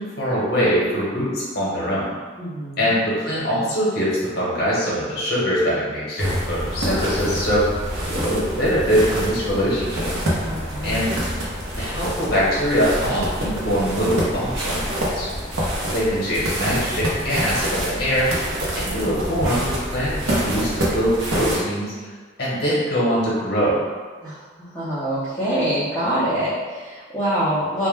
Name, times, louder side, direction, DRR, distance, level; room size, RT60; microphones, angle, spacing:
voice 1, 0.0-2.1 2.8-10.2 10.8-11.1 11.8-15.3 15.9-18.3 18.7-22.1 22.4-23.8, equal, 50° left, -7 dB, 0.8 m, -23 dB
voice 2, 2.4-2.9 10.4-11.0 24.2-27.9, right 1 dB, 10° left, -13 dB, 0.5 m, -25 dB
sound 1, 6.2-21.6, equal, 80° right, 0.6 m, -26 dB
2.2 x 2.1 x 3.1 m, 1.4 s
head